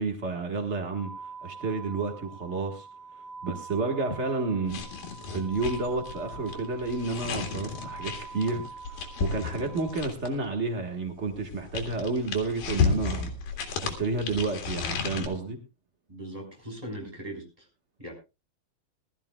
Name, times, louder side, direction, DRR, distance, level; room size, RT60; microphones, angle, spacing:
voice 1, 0.0-2.9 3.4-4.8 5.3-13.3 13.8-15.6, right 3 dB, 65° right, 3 dB, 0.6 m, -30 dB
sound 1, 0.9-10.0, right 4 dB, 45° right, 5.6 m, -44 dB
sound 2, 4.7-10.4 11.3-15.3, left 6 dB, 80° left, 3.8 m, -33 dB
voice 2, 16.1-17.7 18.0-18.1, right 1 dB, 10° right, 1 dB, 4.6 m, -40 dB
20.5 x 13.5 x 2.3 m, 0.27 s
omnidirectional pair, 4.1 m